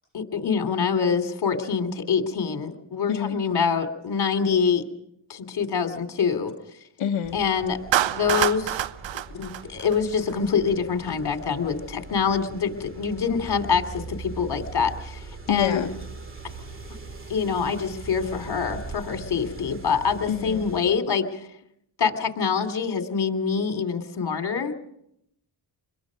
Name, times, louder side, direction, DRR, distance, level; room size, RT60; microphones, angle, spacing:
voice 1, 0.1-4.9 5.3-6.5 7.3-7.8 8.1-8.8 9.3-15.9 17.3-21.4 22.0-24.7, left 6 dB, 55° left, 6 dB, 3.0 m, -25 dB
voice 2, 3.1-3.4 7.0-7.4 15.5-15.9 20.3-20.7, left 8 dB, 75° left, 2 dB, 1.4 m, -26 dB
sound 1, 7.2-20.9, right 4 dB, 25° right, 2.5 m, -41 dB
Clapping, 7.9-10.3, right 12 dB, 70° right, 0.8 m, -26 dB
27.0 x 22.0 x 5.2 m, 0.75 s
cardioid pair, 80°, 46 cm